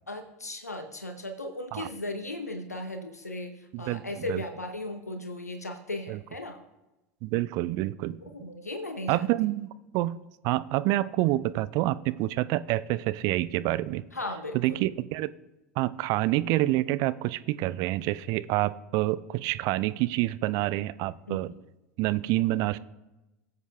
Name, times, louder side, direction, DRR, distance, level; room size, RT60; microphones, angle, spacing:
voice 1, 0.1-6.6 8.2-9.3 14.1-14.8 21.3-21.6, left 1 dB, 90° left, 6 dB, 0.7 m, -37 dB
voice 2, 7.2-8.2 9.1-9.7 9.9-14.0 14.6-15.3 15.8-21.5 22.0-22.8, right 17 dB, 50° right, 16 dB, 0.4 m, -27 dB
18.5 x 8.1 x 2.3 m, 1.0 s
figure-of-eight pair, 80°, 8 cm